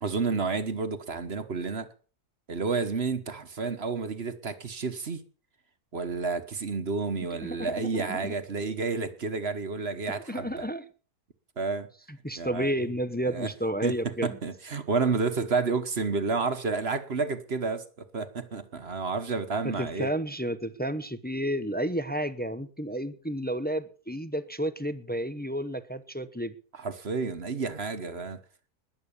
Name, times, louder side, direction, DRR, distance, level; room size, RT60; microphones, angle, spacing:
voice 1, 0.0-1.9 2.5-5.2 5.9-10.7 11.6-11.9 12.4-12.7 13.2-13.5 13.8-20.1 26.7-28.4, right 4 dB, 45° right, 1.4 m, -30 dB
voice 2, 7.4-8.3 10.3-10.8 12.2-14.4 19.6-26.5, equal, 10° left, 0.5 m, -31 dB
20.5 x 8.2 x 7.1 m
omnidirectional pair, 1.6 m